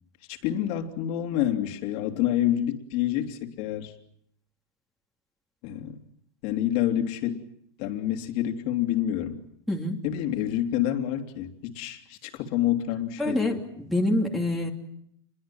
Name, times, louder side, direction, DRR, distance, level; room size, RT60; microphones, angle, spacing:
voice 1, 0.3-3.9 5.6-6.0 6.4-7.4 7.8-9.4 10.0-13.5, left 12 dB, 50° left, 3.2 m, -28 dB
voice 2, 9.7-10.0 13.2-14.7, left 1 dB, ahead, 2.8 m, -26 dB
28.0 x 22.0 x 7.5 m
supercardioid pair, 140°, 15 cm